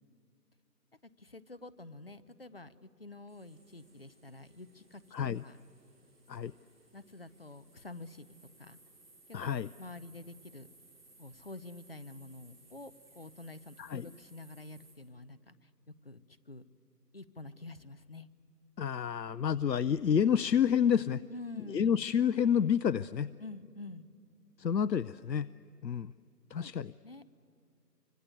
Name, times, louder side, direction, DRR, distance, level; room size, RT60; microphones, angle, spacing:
voice 1, 1.2-5.0 5.4-5.6 6.9-8.3 8.6-8.8 9.3-10.7 11.2-16.6 17.1-18.3 21.3-22.0 23.4-24.1 26.5-26.7 27.0-27.3, left 2 dB, 35° left, 14 dB, 0.7 m, -48 dB
sound 1, 3.3-14.9, right 2 dB, ahead, 1.1 m, -62 dB
voice 2, 5.1-5.4 6.3-6.5 9.3-9.7 13.8-14.1 18.8-21.2 21.7-23.3 24.6-25.5 25.8-26.1 26.5-26.9, left 8 dB, 85° left, 17 dB, 0.6 m, -29 dB
25.5 x 25.0 x 8.2 m, 2.3 s
figure-of-eight pair, 155°, 49 cm